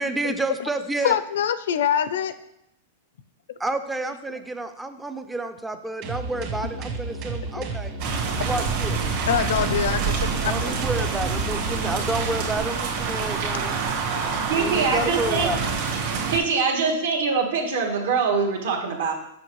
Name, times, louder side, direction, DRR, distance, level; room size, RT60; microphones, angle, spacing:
voice 1, 0.0-1.1 3.6-7.9 8.5-9.0 10.5-13.8 14.5-15.6, right 2 dB, 5° right, 8 dB, 0.3 m, -30 dB
voice 2, 1.0-2.4 4.3-4.4 7.6-7.7 9.3-11.1 15.9-16.0, left 9 dB, 75° left, 13 dB, 0.5 m, -25 dB
sound 1, 6.0-12.6, right 3 dB, 40° right, 1.1 m, -32 dB
sound 2, 8.0-16.4, right 5 dB, 60° right, 1.6 m, -27 dB
voice 3, 14.5-15.5 16.3-19.1, right 5 dB, 80° right, 1 dB, 1.5 m, -23 dB
7.1 x 5.8 x 3.1 m, 0.79 s
supercardioid pair, 150°, 0 cm